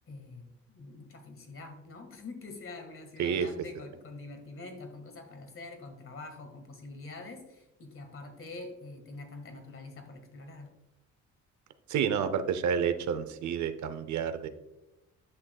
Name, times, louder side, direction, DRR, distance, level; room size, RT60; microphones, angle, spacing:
voice 1, 0.1-10.7, left 3 dB, 45° left, 5 dB, 1.7 m, -45 dB
voice 2, 11.9-14.5, right 7 dB, 70° right, 10 dB, 0.7 m, -29 dB
10.0 x 6.2 x 2.3 m, 0.93 s
cardioid pair, 90°, 30 cm